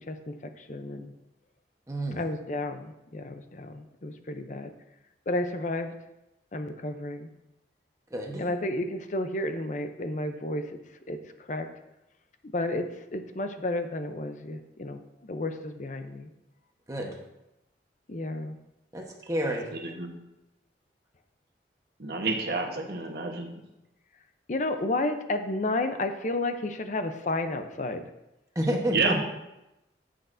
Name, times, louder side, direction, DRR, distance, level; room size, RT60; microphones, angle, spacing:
voice 1, 0.1-1.1 2.1-4.7 5.3-5.9 6.5-7.3 8.4-10.8 11.1-11.2 11.5-11.7 12.5-16.3 18.1-18.6 24.5-28.1, left 2 dB, 45° left, 8 dB, 0.6 m, -32 dB
voice 2, 1.9-2.2 8.1-8.5 16.9-17.2 18.9-19.7 28.5-29.2, equal, 20° right, 1 dB, 1.1 m, -29 dB
voice 3, 19.7-20.1 22.0-23.6 28.9-29.2, right 3 dB, 60° right, 2 dB, 1.1 m, -29 dB
10.5 x 7.8 x 2.6 m, 0.92 s
head